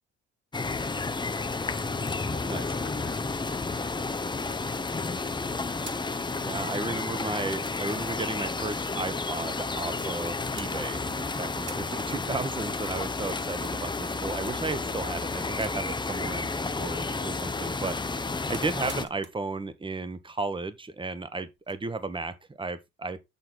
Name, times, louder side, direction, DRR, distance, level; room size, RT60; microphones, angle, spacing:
sound 1, 0.5-19.1, left 3 dB, 15° left, 0.7 m, -31 dB
voice 1, 0.8-5.4, left 5 dB, 35° left, 1.6 m, -50 dB
sound 2, 0.9-10.4, equal, ahead, 1.1 m, -53 dB
sound 3, 4.3-4.9 5.6-6.3 7.0-7.1 7.4-8.5 9.7-10.2 10.6-11.2 11.5-12.0 12.3-12.4 13.2-14.3 14.7-16.1 17.5-19.5 19.7-19.8 21.6-21.7, right 4 dB, 35° right, 1.5 m, -49 dB
voice 2, 6.4-23.2, right 3 dB, 15° right, 1.1 m, -34 dB
6.8 x 6.5 x 3.9 m
cardioid pair, 90°, 30 cm